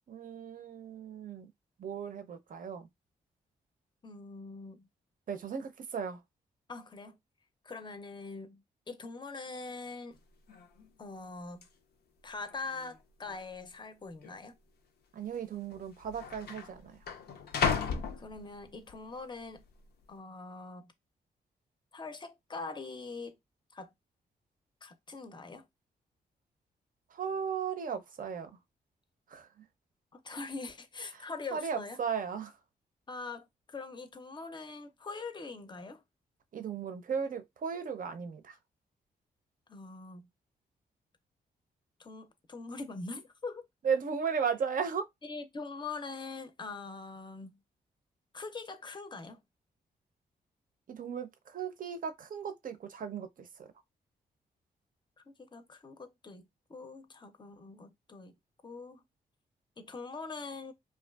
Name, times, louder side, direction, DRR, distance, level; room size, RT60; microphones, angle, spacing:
voice 1, 0.1-1.5 1.8-2.9 5.3-6.2 15.1-17.0 27.1-28.5 29.3-29.5 31.1-32.5 36.5-38.6 43.8-45.1 50.9-53.7, right 6 dB, 55° right, 0.5 m, -36 dB
voice 2, 4.0-4.9 6.7-7.2 7.6-10.2 11.0-11.7 12.2-14.5 18.2-19.6 20.1-20.9 21.9-23.4 23.7-23.9 24.8-25.7 30.1-32.0 33.1-36.0 39.7-40.3 42.0-43.7 45.2-47.6 48.3-49.4 55.3-58.3 58.6-59.0 59.8-60.7, left 3 dB, 25° left, 0.5 m, -43 dB
sound 1, 10.1-10.2 10.5-10.9 11.6-11.7 12.5-13.0 13.2-13.4 14.2-14.4 15.4-15.5 15.7-18.9 19.4-19.8, left 6 dB, 70° left, 0.4 m, -35 dB
2.6 x 2.3 x 2.3 m
cardioid pair, 55°, 17 cm